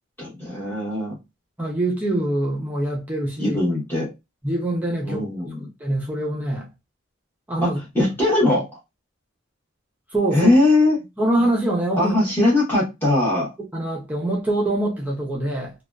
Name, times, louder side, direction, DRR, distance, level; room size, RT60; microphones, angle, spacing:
voice 1, 0.2-1.1 3.4-4.1 5.0-5.6 7.6-7.7 7.9-8.7 10.3-11.0 11.4-11.5 12.0-13.5, left 2 dB, 10° left, 1.0 m, -20 dB
voice 2, 1.6-3.6 4.4-5.2 5.8-6.7 7.5-7.8 10.1-10.5 11.2-12.1 13.7-15.7, right 1 dB, 10° right, 0.6 m, -24 dB
2.5 x 2.2 x 2.3 m
head